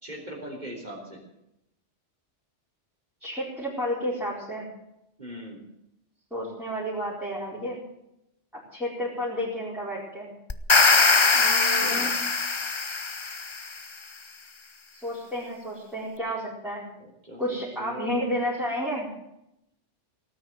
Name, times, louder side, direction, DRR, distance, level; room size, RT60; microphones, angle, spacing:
voice 1, 0.0-1.2 5.2-5.6 11.7-12.2 17.0-18.1, equal, 40° right, -1 dB, 3.8 m, -40 dB
voice 2, 3.2-4.7 6.3-7.8 8.7-10.3 11.3-12.1 14.9-16.8 17.4-19.1, equal, ahead, -7 dB, 4.6 m, -31 dB
sound 1, 10.5-13.7, left 4 dB, 30° left, 0.7 m, -21 dB
18.0 x 9.5 x 7.4 m, 0.83 s
omnidirectional pair, 1.2 m